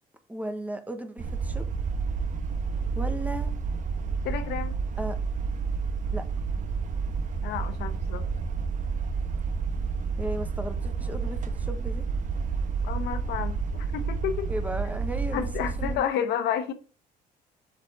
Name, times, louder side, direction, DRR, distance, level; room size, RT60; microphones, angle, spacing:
voice 1, 0.3-1.6 2.9-3.5 5.0-5.2 6.1-6.2 10.2-12.0 14.5-16.1, right 1 dB, 10° right, 1.4 m, -35 dB
sound 1, 1.2-16.0, right 5 dB, 50° right, 1.2 m, -30 dB
voice 2, 4.2-4.8 7.4-8.3 12.8-14.5 15.3-16.7, left 9 dB, 85° left, 1.1 m, -31 dB
7.4 x 5.4 x 3.6 m
cardioid pair, 110°, 17 cm